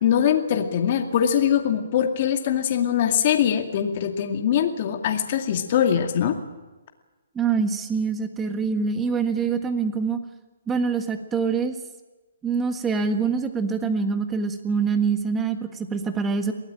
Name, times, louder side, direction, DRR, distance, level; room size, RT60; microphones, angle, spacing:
voice 1, 0.0-6.4, left 9 dB, 35° left, 4 dB, 2.3 m, -22 dB
voice 2, 7.3-10.2 10.7-11.7 12.4-16.5, right 5 dB, 10° right, 8 dB, 1.6 m, -25 dB
23.0 x 17.5 x 8.9 m, 1.2 s
hypercardioid pair, 165°, 0 cm